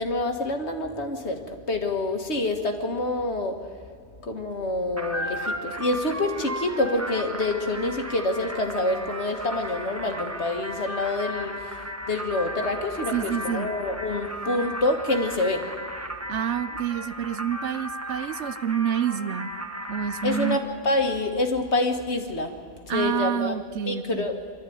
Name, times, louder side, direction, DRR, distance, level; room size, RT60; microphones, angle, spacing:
voice 1, 0.0-3.8 4.2-11.8 12.1-15.9 20.2-23.6 23.8-24.4, left 2 dB, 75° left, 5 dB, 2.0 m, -27 dB
sound 1, 5.0-20.6, equal, 15° right, 1.1 m, -35 dB
voice 2, 13.1-13.7 16.3-19.5 19.9-20.6 22.9-24.3, right 9 dB, 85° right, 14 dB, 1.1 m, -28 dB
25.5 x 13.0 x 9.4 m, 2.2 s
omnidirectional pair, 1.1 m